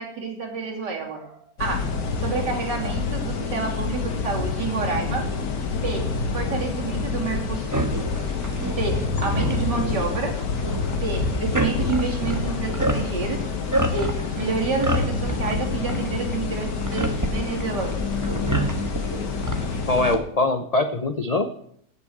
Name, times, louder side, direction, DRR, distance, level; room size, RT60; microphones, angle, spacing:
voice 1, 0.0-1.9 2.2-5.3 5.7-7.9 8.7-10.4 10.9-13.4 13.9-18.0, right 4 dB, 85° right, 0 dB, 3.6 m, -29 dB
sound 1, 1.6-20.2, left 4 dB, 80° left, 2.2 m, -28 dB
sound 2, 7.7-20.2, right 1 dB, 10° right, 1.2 m, -29 dB
voice 2, 19.9-21.6, left 2 dB, 45° left, 9 dB, 0.5 m, -23 dB
16.0 x 6.9 x 7.9 m, 0.69 s
omnidirectional pair, 1.8 m